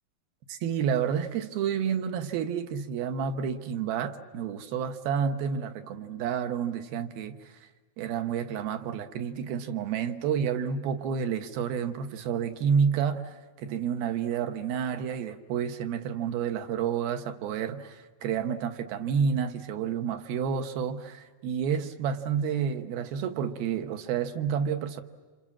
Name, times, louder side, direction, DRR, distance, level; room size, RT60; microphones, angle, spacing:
voice 1, 0.5-7.6 8.0-25.0, right 7 dB, 80° right, 3.1 m, -30 dB
29.0 x 27.5 x 7.4 m
omnidirectional pair, 4.3 m